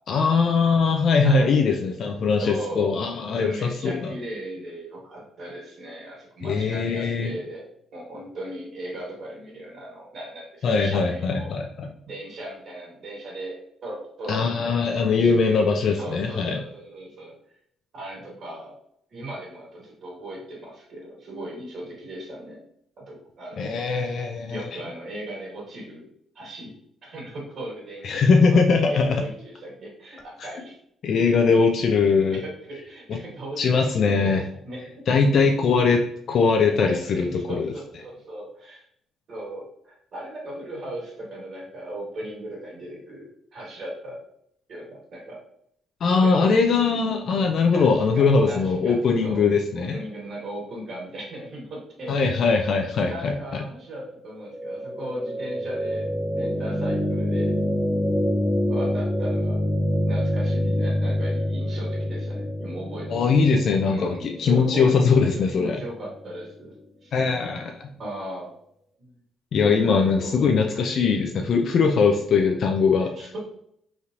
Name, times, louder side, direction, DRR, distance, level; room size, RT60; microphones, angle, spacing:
voice 1, 0.1-4.1 6.4-7.3 10.6-11.9 14.3-16.6 23.6-24.8 28.0-29.2 31.0-32.4 33.1-33.2 33.6-34.4 35.1-36.0 36.3-37.7 46.0-50.0 52.1-53.6 63.1-65.8 67.1-67.8 69.5-73.1, left 4 dB, 60° left, 2 dB, 0.4 m, -21 dB
voice 2, 1.2-1.5 2.4-7.7 7.9-11.5 12.0-17.3 17.9-18.7 19.1-22.6 23.1-23.9 24.5-26.1 26.3-26.7 27.0-28.1 28.5-30.8 32.3-35.1 36.8-38.8 39.3-44.2 44.7-45.4 46.2-46.5 47.7-52.1 53.1-57.5 58.7-59.6 60.0-63.4 63.8-65.2 65.5-66.7 67.0-67.2 68.0-68.5 69.0-69.2 69.8-70.7 73.1-73.4, right 1 dB, 60° right, -5 dB, 1.4 m, -37 dB
sound 1, 54.5-66.5, equal, 5° right, 0.4 m, -27 dB
3.1 x 2.8 x 2.5 m, 0.70 s
hypercardioid pair, 55°, 0 cm